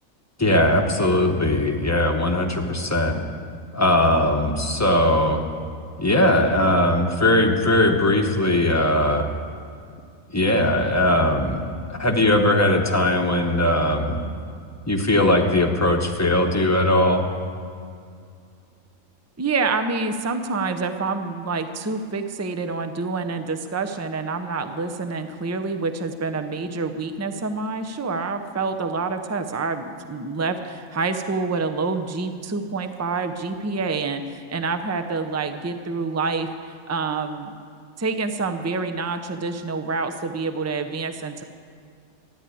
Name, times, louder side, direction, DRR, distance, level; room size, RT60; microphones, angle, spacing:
voice 1, 0.4-3.2 3.7-5.4 6.0-9.2 10.3-14.2 14.9-17.3, left 1 dB, 15° left, 3 dB, 1.0 m, -20 dB
voice 2, 19.4-37.5 38.0-41.4, right 4 dB, 20° right, 8 dB, 0.5 m, -27 dB
13.5 x 10.0 x 8.4 m, 2.3 s
omnidirectional pair, 1.4 m